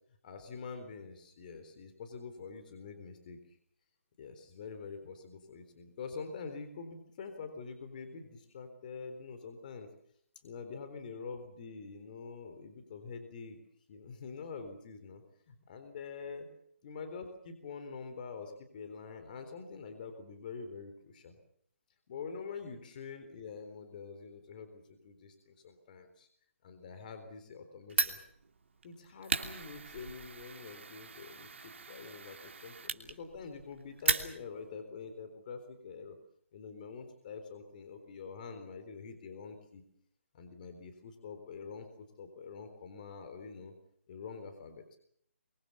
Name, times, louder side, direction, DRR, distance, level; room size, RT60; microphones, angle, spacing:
voice 1, 0.2-3.4 4.2-9.9 10.4-13.6 13.9-16.5 16.8-21.4 22.1-26.3 26.6-28.2 28.8-36.2 36.5-39.8 40.3-43.7 44.1-45.0, left 5 dB, 40° left, 8 dB, 3.9 m, -46 dB
Fire, 27.9-34.7, right 4 dB, 65° right, 2.9 m, -37 dB
24.5 x 24.0 x 7.1 m, 0.67 s
figure-of-eight pair, 150°, 7 cm